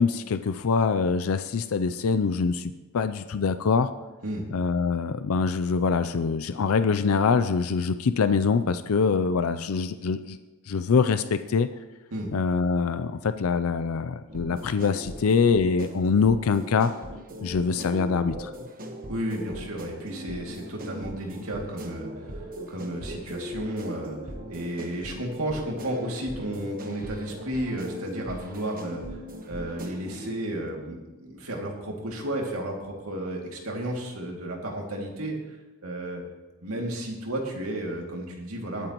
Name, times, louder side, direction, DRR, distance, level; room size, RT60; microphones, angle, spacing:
voice 1, 0.0-3.9 4.5-10.4 10.7-11.7 12.3-16.9 17.4-18.5, left 5 dB, 75° left, 11 dB, 0.5 m, -24 dB
sound 1, 14.3-30.3, equal, 40° right, 1.2 m, -40 dB
voice 2, 19.1-29.2 29.5-36.2 36.6-38.9, right 1 dB, 85° right, 0 dB, 2.4 m, -33 dB
20.5 x 9.0 x 3.0 m, 1.1 s
head